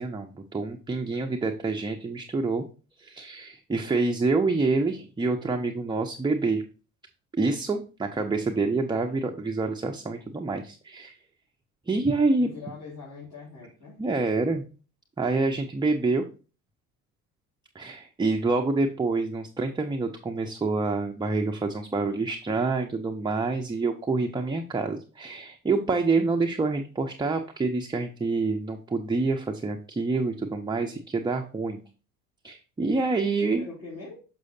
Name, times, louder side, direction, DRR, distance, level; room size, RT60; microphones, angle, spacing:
voice 1, 0.0-2.7 3.0-6.6 7.3-11.1 11.9-12.5 14.0-14.6 15.2-16.3 17.7-31.8 32.4-33.7, right 3 dB, 10° right, 4 dB, 0.6 m, -27 dB
voice 2, 12.4-14.0 33.3-34.2, left 3 dB, 45° left, -8 dB, 3.4 m, -42 dB
6.3 x 6.2 x 2.7 m, 0.35 s
hypercardioid pair, 60°, 42 cm